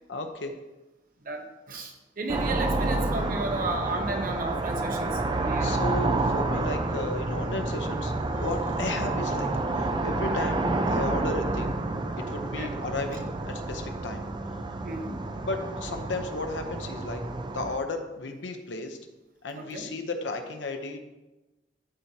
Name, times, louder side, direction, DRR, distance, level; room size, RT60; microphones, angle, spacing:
voice 1, 0.1-0.6 5.6-11.8 12.2-14.3 15.4-17.3 17.5-19.0 19.4-21.0, left 2 dB, 85° left, 5 dB, 0.8 m, -34 dB
voice 2, 1.2-5.8 12.6-12.7 14.8-15.2 19.5-19.9, right 2 dB, 50° right, 4 dB, 1.0 m, -34 dB
sound 1, 2.3-17.8, right 2 dB, 25° right, 0.5 m, -29 dB
12.5 x 4.6 x 2.8 m, 1.1 s
head